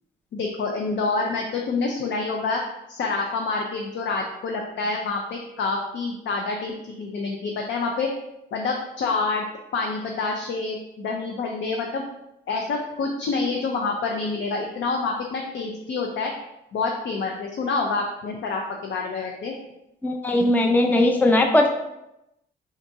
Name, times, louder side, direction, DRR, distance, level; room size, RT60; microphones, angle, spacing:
voice 1, 0.3-2.6 2.9-6.7 7.0-8.1 8.5-9.4 9.7-12.0 12.5-16.3 16.7-19.5, left 4 dB, 65° left, 1 dB, 0.6 m, -27 dB
voice 2, 20.0-21.7, left 1 dB, 10° left, 3 dB, 0.5 m, -19 dB
3.9 x 2.6 x 4.6 m, 0.88 s
cardioid pair, 90°, 20 cm